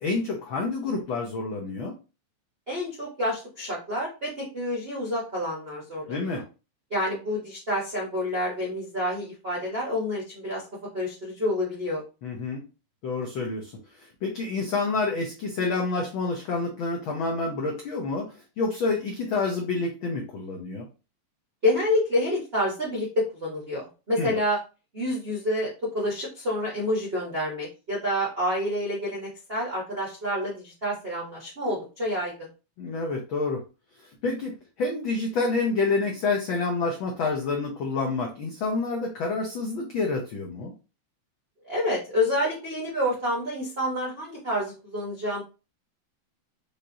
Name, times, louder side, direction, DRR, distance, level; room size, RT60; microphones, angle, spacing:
voice 1, 0.0-1.9 6.1-6.4 12.2-12.6 13.0-13.7 14.0-20.9 24.2-24.4 32.8-33.6 34.0-40.7, left 3 dB, 80° left, 0 dB, 1.1 m, -28 dB
voice 2, 2.7-6.4 6.9-10.7 10.9-12.0 21.6-24.6 24.9-32.5 41.6-45.4, left 1 dB, 70° right, -4 dB, 0.5 m, -28 dB
5.1 x 3.4 x 2.8 m, 0.32 s
omnidirectional pair, 3.3 m